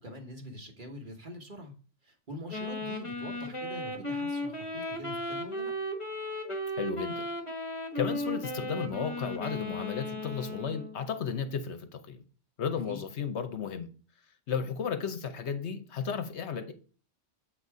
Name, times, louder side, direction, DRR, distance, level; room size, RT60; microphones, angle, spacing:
voice 1, 0.0-1.7 2.0-5.7 12.8-13.0, left 1 dB, 40° right, 1.5 m, -44 dB
Wind instrument woodwind instrument, 2.5-11.0, left 1 dB, 25° left, 1.2 m, -36 dB
voice 2, 6.8-7.3 7.9-12.2 12.6-13.9 14.5-16.7, left 6 dB, 65° left, 1.0 m, -34 dB
7.7 x 4.1 x 4.7 m
omnidirectional pair, 1.3 m